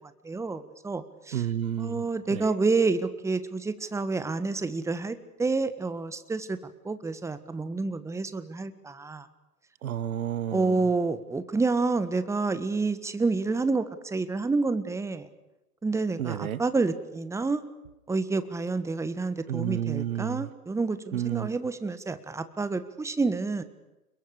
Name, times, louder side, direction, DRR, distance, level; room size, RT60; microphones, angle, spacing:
voice 1, 0.2-1.4 1.8-6.6 6.8-9.3 10.5-15.3 15.8-17.6 18.1-23.6, right 3 dB, 5° right, 12 dB, 1.6 m, -28 dB
voice 2, 1.3-2.5 9.8-10.9 16.2-16.6 19.5-20.5 21.1-21.6, right 10 dB, 65° right, 18 dB, 1.5 m, -31 dB
29.0 x 22.5 x 6.7 m, 0.95 s
figure-of-eight pair, 110°, 45 cm